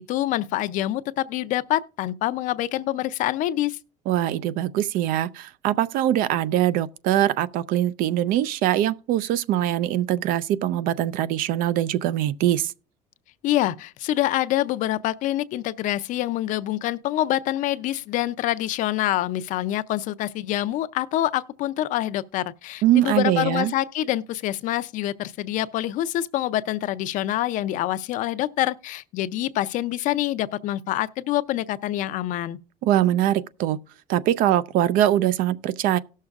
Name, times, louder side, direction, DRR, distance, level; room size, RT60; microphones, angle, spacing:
voice 1, 0.0-3.8 13.4-32.6, left 14 dB, 60° left, 0.5 m, -26 dB
voice 2, 4.1-12.7 22.8-23.7 32.8-33.8 34.1-36.0, right 12 dB, 65° right, 0.5 m, -22 dB
18.0 x 6.5 x 2.4 m
cardioid pair, 150°, 15 cm